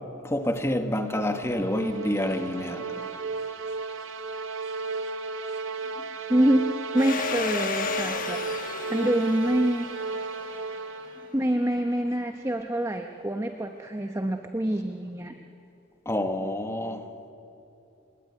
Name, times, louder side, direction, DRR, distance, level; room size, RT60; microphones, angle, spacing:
voice 1, 0.2-3.1 16.0-17.0, left 1 dB, 10° left, 1.3 m, -28 dB
sound 1, 0.8-11.4, right 3 dB, 60° right, 0.9 m, -34 dB
voice 2, 6.3-8.4 8.9-9.9 10.1-10.3 11.3-15.3, right 1 dB, 15° right, 0.9 m, -26 dB
Domestic sounds home sounds, 7.0-11.4, left 6 dB, 40° left, 1.3 m, -34 dB
28.0 x 18.5 x 9.6 m
head